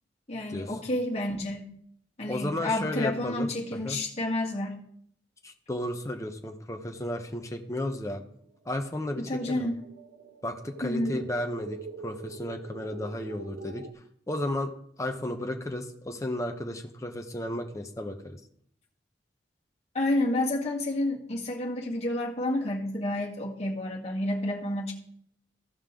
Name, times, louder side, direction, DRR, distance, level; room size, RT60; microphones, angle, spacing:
voice 1, 0.3-1.7 2.2-4.8 9.2-9.8 10.8-11.2 19.9-24.9, left 1 dB, 35° left, -2 dB, 1.8 m, -30 dB
voice 2, 2.3-3.5 3.8-4.0 5.4-8.2 8.7-9.7 10.4-13.9 14.3-14.7 15.0-18.4, left 1 dB, 15° left, 4 dB, 0.9 m, -33 dB
sound 1, 9.0-13.9, right 5 dB, 55° right, 0.7 m, -44 dB
15.0 x 5.4 x 3.7 m, 0.66 s
head